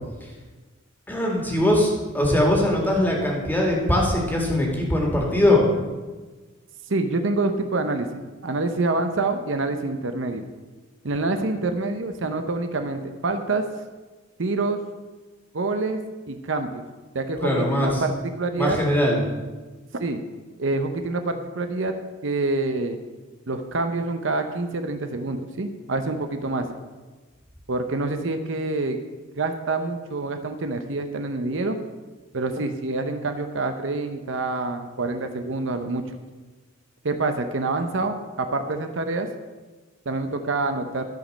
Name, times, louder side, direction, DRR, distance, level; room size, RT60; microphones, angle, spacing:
voice 1, 1.1-5.6 17.4-18.0 18.6-19.2, left 1 dB, 10° left, -1 dB, 1.9 m, -21 dB
voice 2, 6.9-10.4 11.0-13.6 14.4-14.8 15.5-16.0 16.3-16.8 17.1-18.1 18.4-18.8 19.9-20.2 20.6-21.9 22.2-23.0 23.5-26.7 27.7-29.0 29.4-31.8 32.3-36.0 37.0-39.3 40.1-41.0, right 3 dB, 65° right, 7 dB, 0.7 m, -26 dB
13.5 x 5.1 x 6.5 m, 1.3 s
head